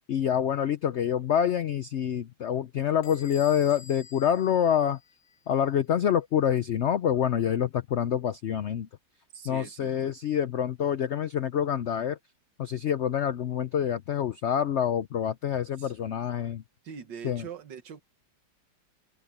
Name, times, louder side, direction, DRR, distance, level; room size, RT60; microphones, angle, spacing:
voice 1, 0.1-5.0 5.5-8.9 9.4-12.2 12.6-16.6 17.2-17.5, left 9 dB, 90° left, 0.6 m, -26 dB
Bell / Door, 3.0-5.5, left 4 dB, 55° left, 2.0 m, -50 dB
voice 2, 9.3-10.1 15.8-15.9 16.8-18.0, right 7 dB, 75° right, 2.1 m, -43 dB
omnidirectional pair, 2.0 m